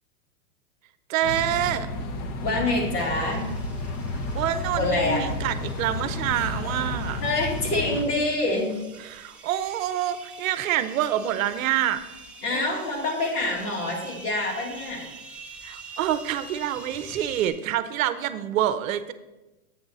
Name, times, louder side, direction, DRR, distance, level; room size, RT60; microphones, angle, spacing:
voice 1, 1.1-1.9 4.3-7.2 7.9-8.0 8.6-8.7 9.0-12.0 12.5-13.1 15.6-19.1, right 11 dB, 60° right, 11 dB, 0.7 m, -27 dB
sound 1, 1.2-8.0, left 2 dB, 35° left, 0.7 m, -32 dB
voice 2, 2.4-3.5 4.7-5.2 7.2-8.8 12.4-15.1, left 2 dB, 85° left, -2 dB, 3.0 m, -26 dB
sound 2, 3.0-17.5, right 4 dB, 5° right, 0.4 m, -46 dB
8.0 x 6.1 x 4.0 m, 1.0 s
hypercardioid pair, 125°, 45 cm